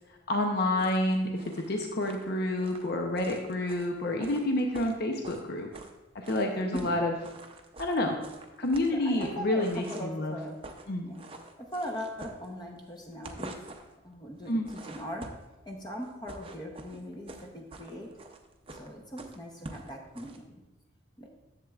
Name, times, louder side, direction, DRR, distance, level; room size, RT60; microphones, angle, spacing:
voice 1, 0.3-5.7 6.3-7.1 7.8-8.1 8.6-10.4 10.9-11.1 14.5-14.7, left 1 dB, 50° left, 2 dB, 0.7 m, -29 dB
sound 1, 0.8-6.0 6.2-6.9 7.2-10.2 10.5-10.9 11.1-12.8 13.1-13.9 14.4-15.5 16.0-20.4, right 2 dB, 25° right, 0.6 m, -46 dB
voice 2, 6.4-7.0 8.9-10.6 11.0-11.2 11.7-13.6 14.0-15.2 15.6-18.1 18.8-20.6 21.2-21.3, equal, 20° left, 0 dB, 0.8 m, -40 dB
10.5 x 7.4 x 2.4 m, 1.1 s
head